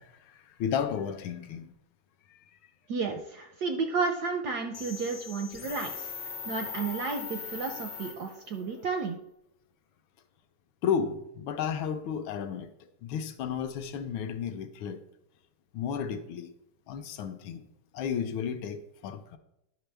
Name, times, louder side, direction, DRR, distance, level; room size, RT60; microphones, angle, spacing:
voice 1, 0.0-1.7 2.3-2.4 8.5-8.9 10.8-12.7 13.0-15.0 15.7-16.5 16.9-17.7 17.9-19.4, left 7 dB, 75° left, 1.3 m, -33 dB
voice 2, 2.9-6.1 6.5-9.2, right 4 dB, 70° right, 0.9 m, -32 dB
sound 1, 4.7-8.6, left 6 dB, 60° left, 1.3 m, -40 dB
10.5 x 5.9 x 3.3 m
omnidirectional pair, 2.4 m